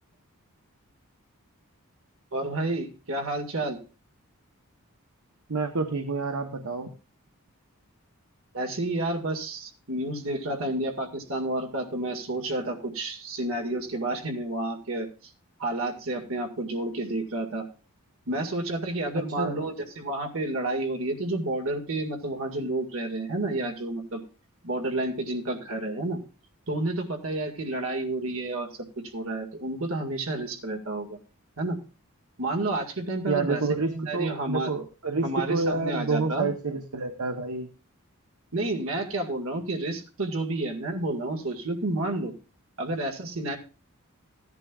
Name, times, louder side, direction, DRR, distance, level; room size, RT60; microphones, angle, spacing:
voice 1, 2.3-3.8 8.5-15.3 15.6-17.6 18.3-24.2 24.6-26.2 26.7-28.7 29.1-31.2 31.6-31.8 32.4-33.6 33.9-34.7 35.2-36.5 38.5-42.3 42.8-43.6, right 2 dB, 60° right, 3 dB, 2.0 m, -30 dB
voice 2, 5.5-6.9 19.4-19.6 33.3-37.7, right 3 dB, 80° right, 5 dB, 1.0 m, -28 dB
16.0 x 10.5 x 2.4 m, 0.33 s
head